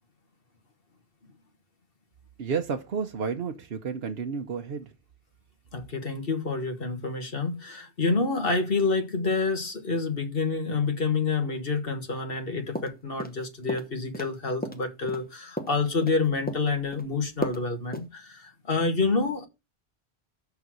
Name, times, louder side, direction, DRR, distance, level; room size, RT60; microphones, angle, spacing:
voice 1, 2.4-4.9, right 6 dB, 70° right, 1.0 m, -31 dB
voice 2, 5.7-19.5, left 4 dB, 60° left, 1.7 m, -28 dB
sound 1, 12.7-13.4 13.7-14.3 14.6-16.2 16.5-17.0 17.4-17.6 17.9-18.1, equal, 10° left, 0.7 m, -34 dB
6.6 x 6.1 x 6.1 m
omnidirectional pair, 1.1 m